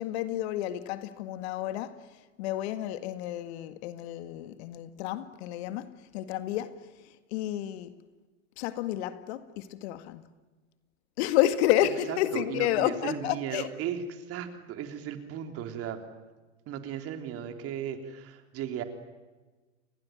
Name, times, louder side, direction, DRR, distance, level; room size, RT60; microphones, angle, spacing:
voice 1, 0.0-2.1 2.4-7.9 8.6-10.2 11.2-13.7, left 13 dB, 55° left, 1.9 m, -30 dB
voice 2, 12.1-16.0 16.7-18.8, right 9 dB, 35° right, 3.6 m, -36 dB
30.0 x 21.5 x 9.4 m
hypercardioid pair, 115°, 38 cm